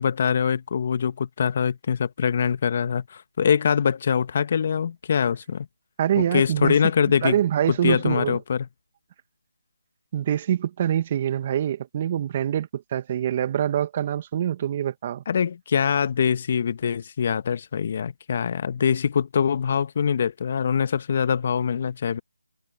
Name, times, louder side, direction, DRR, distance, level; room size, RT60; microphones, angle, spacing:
voice 1, 0.0-5.7 6.2-7.4 7.7-8.7 15.3-22.2, left 7 dB, 40° left, 1.5 m, -23 dB
voice 2, 6.0-8.4 10.1-15.2, right 10 dB, 30° right, 1.6 m, -25 dB
figure-of-eight pair, 155°, 0 cm